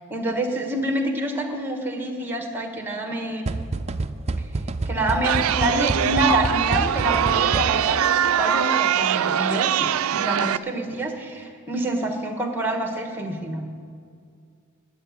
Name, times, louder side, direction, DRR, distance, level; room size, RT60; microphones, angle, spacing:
voice 1, 0.1-3.5 4.8-13.7, right 1 dB, 10° right, 4 dB, 1.6 m, -27 dB
sound 1, 3.5-8.1, right 2 dB, 30° right, 0.5 m, -29 dB
Chatter, 5.2-10.6, right 9 dB, 85° right, 0.4 m, -22 dB
13.5 x 9.4 x 9.6 m, 2.2 s
head